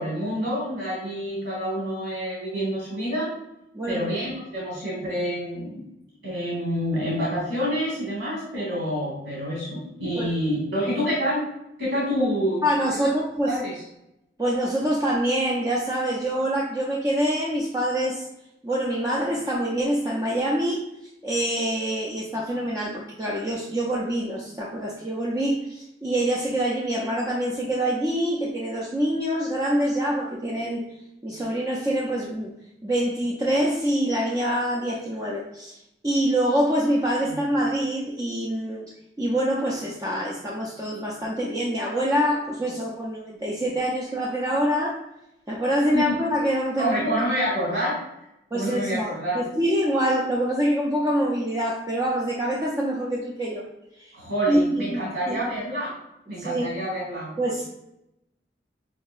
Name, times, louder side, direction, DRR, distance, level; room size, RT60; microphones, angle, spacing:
voice 1, 0.0-3.3 3.9-5.8 6.2-11.5 11.8-12.6 13.5-13.8 45.9-46.0 46.8-48.0 48.5-49.4 54.1-55.9 56.3-57.3, equal, 90° right, -4 dB, 1.2 m, -27 dB
voice 2, 3.7-4.1 10.2-10.3 12.6-13.6 14.4-18.3 18.6-20.9 21.2-30.8 31.2-32.5 32.8-38.9 39.2-45.0 45.5-47.0 48.5-53.7 54.0-54.1 54.5-55.5 56.4-56.7 57.4-57.7, right 1 dB, 20° right, -4 dB, 0.4 m, -25 dB
5.5 x 2.7 x 2.4 m, 0.86 s
head